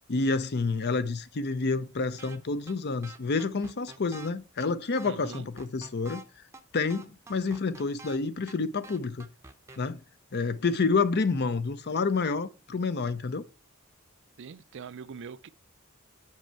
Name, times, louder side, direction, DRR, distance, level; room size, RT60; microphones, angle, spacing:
voice 1, 0.1-6.2 6.7-9.3 9.8-10.0 10.3-13.5, left 4 dB, 50° left, 0.6 m, -29 dB
sound 1, 2.2-2.4 2.7-2.8 3.0-4.3 4.6-4.7 5.0-6.2 6.5-6.6 6.9-8.2 8.5-8.6 8.8-9.8, right 3 dB, 15° right, 0.7 m, -47 dB
voice 2, 5.0-5.5 14.4-15.5, right 6 dB, 55° right, 0.5 m, -43 dB
7.7 x 5.6 x 4.5 m
head